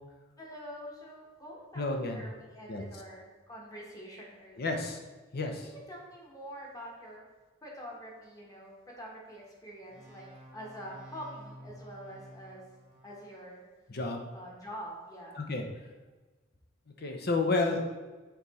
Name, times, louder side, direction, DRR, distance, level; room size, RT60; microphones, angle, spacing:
voice 1, 0.4-4.9 5.6-7.2 7.6-10.3 10.5-12.6 13.0-13.6 14.3-15.4, equal, 20° left, -3 dB, 1.3 m, -46 dB
voice 2, 1.8-2.2 2.7-2.8 4.6-5.0 5.3-5.7 13.9-14.3 15.3-15.7 17.0-17.8, left 3 dB, 50° left, 3 dB, 0.8 m, -31 dB
sound 1, 9.9-13.5, right 1 dB, 5° right, 1.1 m, -52 dB
6.9 x 3.9 x 4.2 m, 1.3 s
head